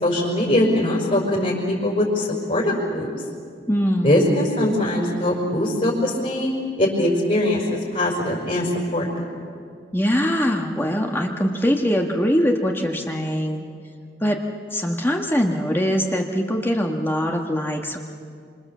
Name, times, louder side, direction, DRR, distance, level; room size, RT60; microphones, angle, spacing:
voice 1, 0.0-3.1 4.0-6.5 6.8-7.6 7.9-9.2, left 1 dB, 40° left, -4 dB, 5.1 m, -21 dB
voice 2, 3.7-4.3 9.9-13.6 14.2-14.4 14.7-18.0, equal, 15° left, 1 dB, 1.5 m, -22 dB
27.0 x 26.5 x 7.4 m, 2.2 s
head